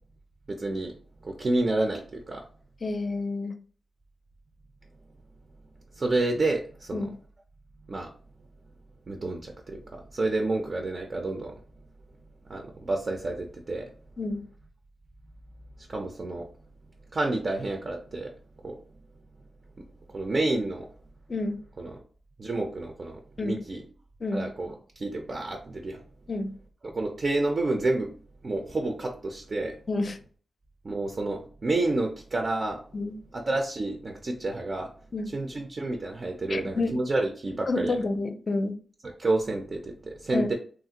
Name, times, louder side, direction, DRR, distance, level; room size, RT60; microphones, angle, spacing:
voice 1, 0.5-0.9 1.2-2.4 6.0-7.1 7.9-8.1 9.1-11.5 12.5-13.9 15.9-16.5 17.1-18.3 18.6-18.8 20.1-20.9 21.8-22.0 22.4-23.8 24.3-26.0 26.9-28.1 28.4-29.8 30.8-32.8 33.3-34.9 35.3-38.0 39.2-40.5, right 2 dB, 45° right, 3 dB, 0.5 m, -29 dB
voice 2, 2.8-3.6 6.9-7.1 14.2-14.4 21.3-21.6 23.4-23.6 24.2-24.4 26.3-26.5 29.9-30.2 32.9-33.2 35.1-35.3 36.5-37.0 37.7-38.8 40.3-40.5, left 2 dB, 45° left, 7 dB, 0.5 m, -29 dB
3.1 x 2.4 x 2.8 m, 0.43 s
wide cardioid pair, 90°, 0 cm